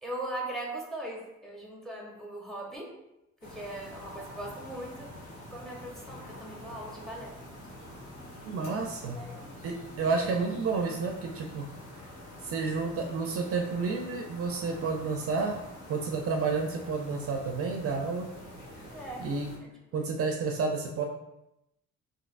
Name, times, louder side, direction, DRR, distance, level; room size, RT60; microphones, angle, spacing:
voice 1, 0.0-2.9 3.4-7.3 9.1-9.5 10.0-10.2 18.9-19.3 19.6-20.1, right 1 dB, ahead, -1 dB, 0.7 m, -40 dB
sound 1, 3.4-19.6, left 1 dB, 75° left, 1.2 m, -46 dB
voice 2, 8.4-9.2 9.6-11.7 12.4-15.6 15.9-18.3 19.2-19.5 19.9-21.0, right 4 dB, 50° right, 2 dB, 0.4 m, -30 dB
3.1 x 2.6 x 2.5 m, 0.89 s
cardioid pair, 90°, 30 cm